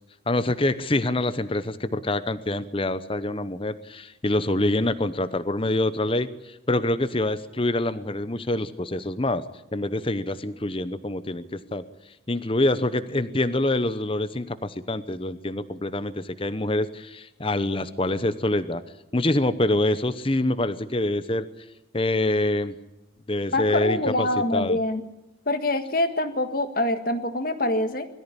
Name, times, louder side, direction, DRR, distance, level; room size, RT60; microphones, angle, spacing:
voice 1, 0.3-9.4 9.7-11.8 12.3-18.8 19.1-21.4 21.9-22.7 23.3-24.3 24.5-24.8, left 1 dB, 25° left, 12 dB, 0.9 m, -25 dB
voice 2, 23.5-25.0 25.5-28.1, left 1 dB, 45° left, 8 dB, 1.8 m, -25 dB
22.0 x 14.5 x 9.9 m, 0.97 s
head